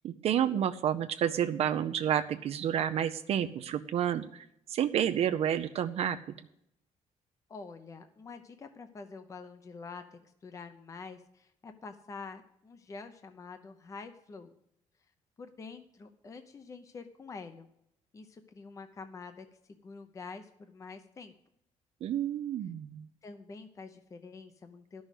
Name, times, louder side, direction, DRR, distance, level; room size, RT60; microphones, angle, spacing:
voice 1, 0.0-6.2 22.0-23.1, right 10 dB, 55° right, 10 dB, 0.5 m, -30 dB
voice 2, 7.5-14.5 15.4-17.7 18.1-21.3 23.2-25.0, left 4 dB, 25° left, 8 dB, 0.7 m, -47 dB
12.5 x 6.3 x 8.1 m, 0.76 s
cardioid pair, 155°, 12 cm